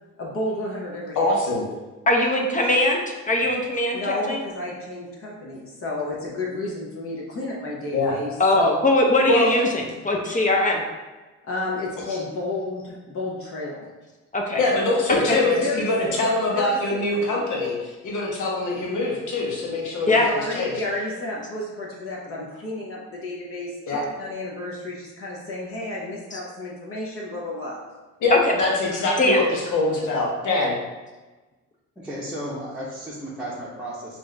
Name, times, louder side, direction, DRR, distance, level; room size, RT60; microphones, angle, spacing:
voice 1, 0.2-1.3 3.9-8.7 11.4-13.9 15.3-17.3 20.2-27.8, left 2 dB, 45° left, -3 dB, 0.9 m, -31 dB
voice 2, 1.1-1.6 7.9-8.1 9.3-9.5 12.1-12.2 14.6-20.7 23.9-24.0 28.2-30.7, left 2 dB, 80° left, -2 dB, 1.1 m, -23 dB
voice 3, 2.1-3.0 3.3-4.4 8.4-10.8 14.3-14.6 15.3-15.4 20.1-20.3 26.3-26.4 28.3-28.5 29.2-29.4, left 1 dB, 25° left, 0 dB, 0.5 m, -21 dB
voice 4, 32.0-34.2, equal, 5° right, -9 dB, 0.8 m, -34 dB
3.5 x 2.6 x 3.3 m, 1.2 s
cardioid pair, 90°, 30 cm